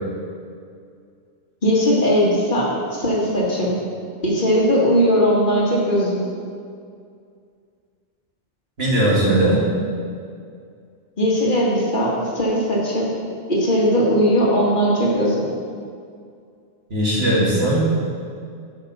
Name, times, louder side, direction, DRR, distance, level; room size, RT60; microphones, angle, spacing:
voice 1, 1.6-3.8 4.2-6.2 11.2-13.1 13.5-15.5, equal, 45° left, -4 dB, 1.8 m, -19 dB
voice 2, 8.8-9.6 16.9-17.8, right 1 dB, 60° right, -6 dB, 2.5 m, -18 dB
8.9 x 5.9 x 5.5 m, 2.3 s
omnidirectional pair, 1.2 m